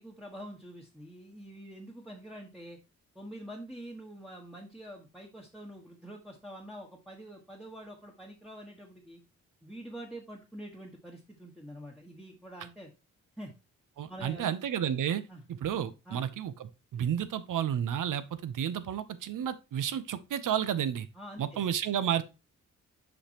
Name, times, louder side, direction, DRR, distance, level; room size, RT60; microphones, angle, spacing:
voice 1, 0.0-2.8 3.1-9.2 9.6-12.9 13.4-13.5 14.1-14.6 15.3-15.4 16.1-16.3 21.1-21.6, right 1 dB, ahead, 1.3 m, -46 dB
voice 2, 14.0-15.2 15.5-21.1 21.4-22.2, right 9 dB, 70° right, 0.8 m, -31 dB
7.1 x 5.2 x 2.9 m
cardioid pair, 75°, 33 cm